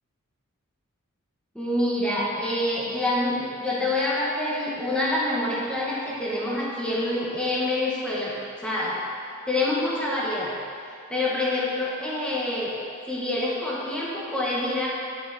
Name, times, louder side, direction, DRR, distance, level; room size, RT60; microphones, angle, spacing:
voice 1, 1.5-9.0 9.4-10.5 11.1-12.7 13.1-14.9, left 1 dB, 5° left, -6 dB, 1.7 m, -26 dB
9.4 x 6.7 x 4.3 m, 2.4 s
head